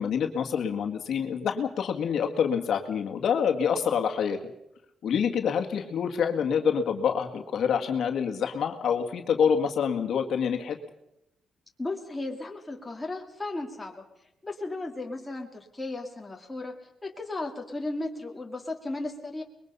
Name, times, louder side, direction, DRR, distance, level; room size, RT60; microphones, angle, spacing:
voice 1, 0.0-4.4 5.0-10.8, left 7 dB, 65° left, 4 dB, 1.9 m, -26 dB
voice 2, 11.8-14.0 14.4-16.7 17.0-19.4, left 2 dB, 10° left, 1 dB, 2.4 m, -35 dB
25.0 x 21.5 x 5.6 m, 0.84 s
wide cardioid pair, 155°, 0 cm